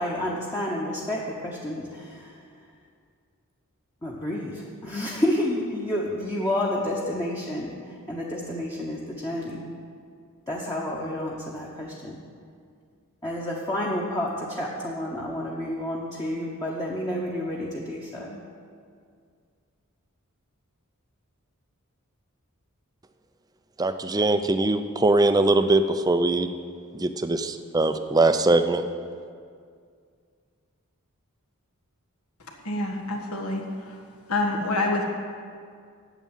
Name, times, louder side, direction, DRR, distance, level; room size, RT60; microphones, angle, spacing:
voice 1, 0.0-2.4 4.0-7.7 8.1-9.6 10.5-12.2 13.2-18.4, left 1 dB, 15° left, -4 dB, 1.0 m, -30 dB
voice 2, 23.8-26.5 26.9-28.8, right 2 dB, 15° right, 9 dB, 0.4 m, -21 dB
voice 3, 32.6-34.0 34.3-35.0, left 2 dB, 80° left, 2 dB, 1.6 m, -27 dB
9.1 x 7.4 x 9.0 m, 2.2 s
head